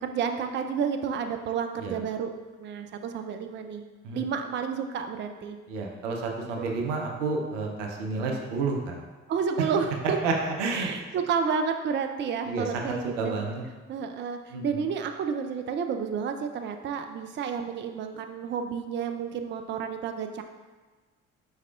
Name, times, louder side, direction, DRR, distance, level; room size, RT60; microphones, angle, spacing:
voice 1, 0.0-2.3 2.6-3.8 4.1-5.6 6.6-6.7 9.3-10.2 10.7-13.4 13.9-20.4, right 6 dB, 30° right, 6 dB, 0.4 m, -30 dB
voice 2, 5.7-9.0 10.0-10.9 12.5-13.6 14.5-14.8, right 3 dB, 80° right, 1 dB, 0.6 m, -30 dB
4.7 x 4.2 x 2.3 m, 1.3 s
figure-of-eight pair, 45°, 36 cm